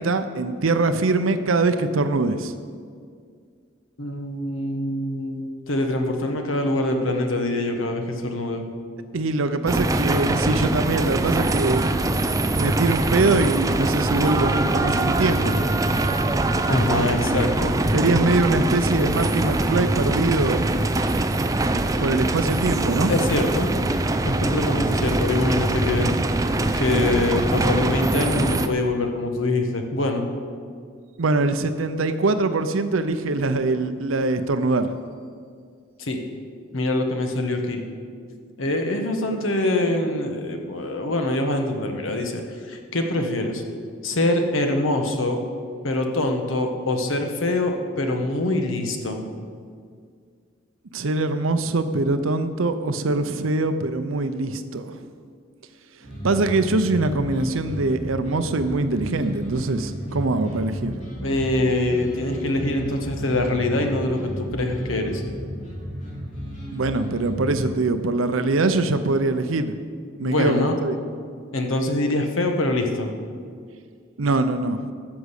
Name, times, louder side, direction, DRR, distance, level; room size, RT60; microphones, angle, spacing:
voice 1, 0.0-2.5 9.1-11.9 12.5-15.6 17.9-20.7 22.0-23.1 31.2-34.9 50.9-55.0 56.2-61.0 66.7-69.7 70.2-70.9 74.2-74.9, right 2 dB, 90° right, 9 dB, 0.7 m, -23 dB
voice 2, 4.0-8.6 16.7-17.7 18.0-18.3 23.1-23.7 24.3-26.1 26.8-30.3 36.0-36.2 36.7-37.8 38.6-42.4 42.7-43.6 44.0-45.4 45.8-49.2 61.2-65.2 70.2-70.8 71.5-73.1, left 2 dB, 85° left, 4 dB, 1.4 m, -24 dB
sound 1, 9.7-28.7, right 2 dB, 15° right, 0.4 m, -23 dB
sound 2, 56.0-67.7, equal, 40° left, 3.6 m, -33 dB
13.0 x 6.3 x 8.2 m, 2.1 s
head